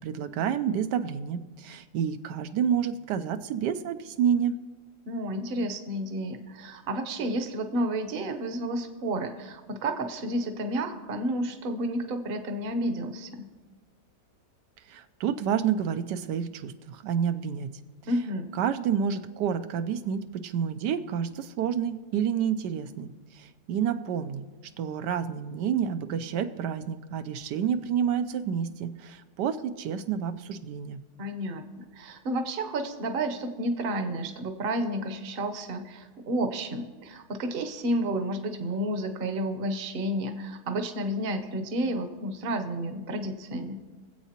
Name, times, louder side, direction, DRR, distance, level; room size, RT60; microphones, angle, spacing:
voice 1, 0.0-4.6 14.9-17.7 18.5-24.4 24.8-31.0, right 8 dB, 85° right, 9 dB, 1.2 m, -29 dB
voice 2, 5.0-13.5 18.1-18.5 31.2-43.8, right 1 dB, 45° right, 7 dB, 0.9 m, -31 dB
24.0 x 8.1 x 2.9 m, 1.3 s
omnidirectional pair, 1.8 m